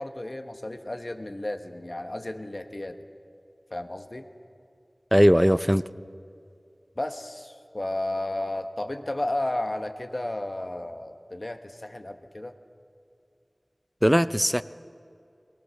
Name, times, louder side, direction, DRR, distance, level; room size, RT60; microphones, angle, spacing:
voice 1, 0.0-3.0 3.7-4.3 7.0-12.5, left 1 dB, 45° left, 7 dB, 1.3 m, -33 dB
voice 2, 5.1-5.8 14.0-14.6, equal, 5° right, 15 dB, 0.5 m, -19 dB
22.5 x 19.5 x 6.5 m, 2.5 s
wide cardioid pair, 45°, 0 cm